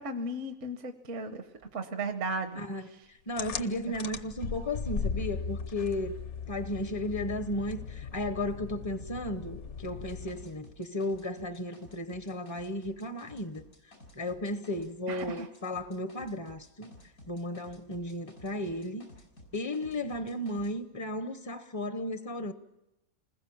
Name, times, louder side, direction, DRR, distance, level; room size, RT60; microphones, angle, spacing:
voice 1, 0.0-1.4 1.7-3.1 15.1-15.5, right 2 dB, 65° right, 1.4 m, -36 dB
voice 2, 3.3-6.1 6.5-13.6 14.2-16.9 17.3-19.1 19.5-22.5, left 1 dB, 25° left, 0.7 m, -34 dB
sound 1, 3.4-10.5, left 5 dB, 60° left, 1.3 m, -38 dB
sound 2, 10.0-14.9 15.2-20.7, left 1 dB, 90° left, 5.7 m, -54 dB
28.0 x 20.5 x 7.2 m
omnidirectional pair, 1.4 m